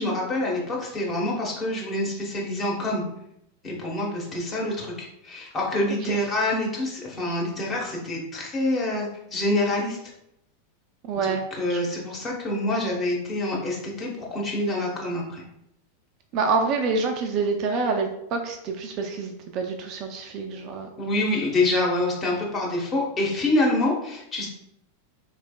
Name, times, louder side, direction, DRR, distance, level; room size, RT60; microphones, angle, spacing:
voice 1, 0.0-3.0 3.6-10.0 11.1-15.4 21.0-24.5, left 1 dB, 25° left, -3 dB, 1.1 m, -26 dB
voice 2, 11.1-11.4 11.7-11.8 16.3-20.9, right 4 dB, 40° right, 4 dB, 0.4 m, -27 dB
4.0 x 3.1 x 2.3 m, 0.78 s
figure-of-eight pair, 90°, 0 cm